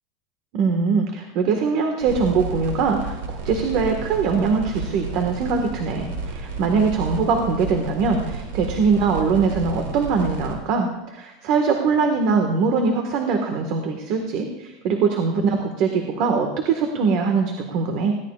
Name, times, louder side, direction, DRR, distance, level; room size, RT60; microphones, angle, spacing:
voice 1, 0.5-18.1, right 5 dB, 55° right, 4 dB, 1.6 m, -22 dB
sound 1, 2.0-10.5, right 3 dB, 80° right, 4.1 m, -32 dB
21.0 x 16.5 x 2.5 m, 1.0 s
supercardioid pair, 140°, 0 cm